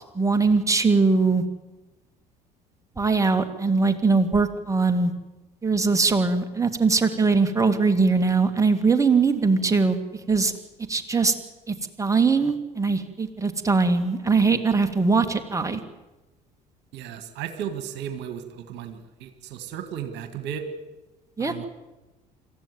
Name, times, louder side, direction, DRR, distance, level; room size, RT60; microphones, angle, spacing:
voice 1, 0.1-1.4 3.0-5.1 5.6-10.0 10.3-10.5 10.9-11.3 11.7-15.8 21.4-21.5, right 4 dB, 15° right, 6 dB, 2.4 m, -21 dB
voice 2, 16.9-20.7 21.4-21.7, right 9 dB, 60° right, 9 dB, 2.0 m, -35 dB
27.0 x 14.5 x 9.3 m, 1.1 s
figure-of-eight pair, 55°, 21 cm